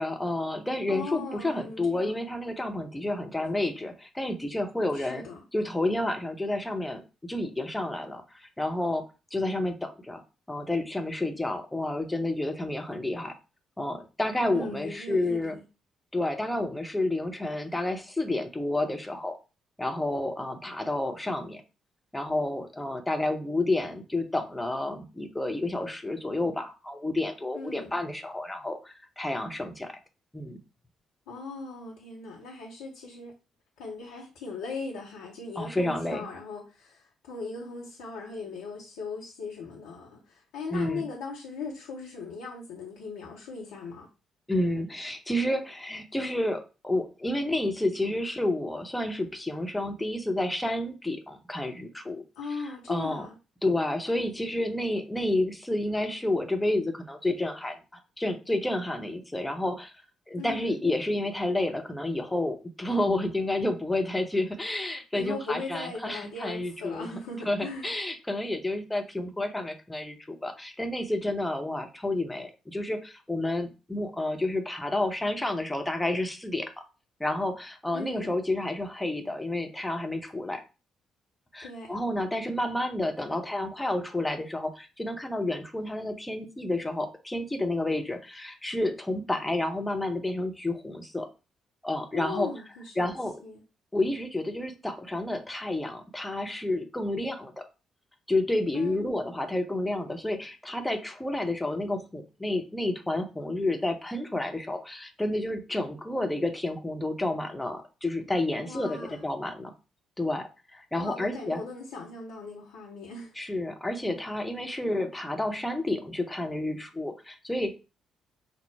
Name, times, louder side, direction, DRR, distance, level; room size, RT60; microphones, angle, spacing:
voice 1, 0.0-5.2 5.5-9.0 9.3-10.2 10.5-13.3 13.8-15.5 16.1-19.4 19.8-21.6 22.1-29.9 30.3-30.6 35.6-36.3 40.7-41.0 44.5-52.2 52.5-53.3 53.6-57.8 58.2-67.1 67.5-76.7 77.2-80.6 81.5-91.3 91.8-92.5 93.0-93.4 93.9-97.6 98.3-109.7 110.2-111.6 113.4-117.7, left 1 dB, 10° left, 0.9 m, -30 dB
voice 2, 0.9-2.1 4.9-5.4 14.5-15.6 27.5-27.9 31.3-33.3 33.8-44.1 52.4-53.3 60.4-60.8 65.1-67.9 77.9-78.3 81.6-81.9 92.1-93.1 93.4-93.6 98.7-99.0 108.6-109.2 110.9-113.3, left 4 dB, 70° left, 0.8 m, -38 dB
5.9 x 2.0 x 3.4 m
figure-of-eight pair, 40°, 0 cm